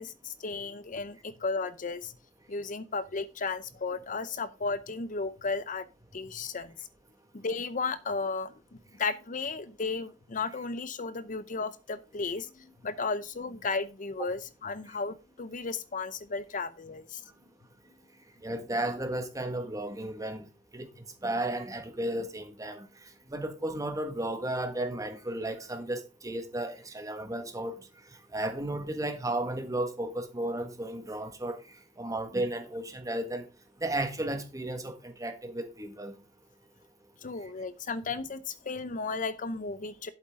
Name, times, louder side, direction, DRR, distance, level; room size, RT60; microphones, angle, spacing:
voice 1, 0.0-2.1 2.5-5.8 6.1-6.7 7.3-8.5 9.0-17.2 37.2-40.1, left 4 dB, 45° left, 0.7 m, -34 dB
voice 2, 18.4-20.4 20.7-20.9 21.2-22.9 23.3-27.7 28.3-31.6 32.0-33.4 33.8-36.1, right 1 dB, 20° right, 1.6 m, -33 dB
11.5 x 8.2 x 3.7 m
head